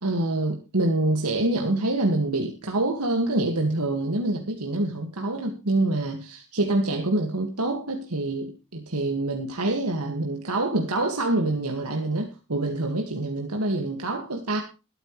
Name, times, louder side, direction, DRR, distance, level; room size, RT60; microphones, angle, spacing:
voice 1, 0.0-14.6, right 2 dB, 90° right, 2.0 m, -26 dB
21.0 x 9.1 x 3.2 m
head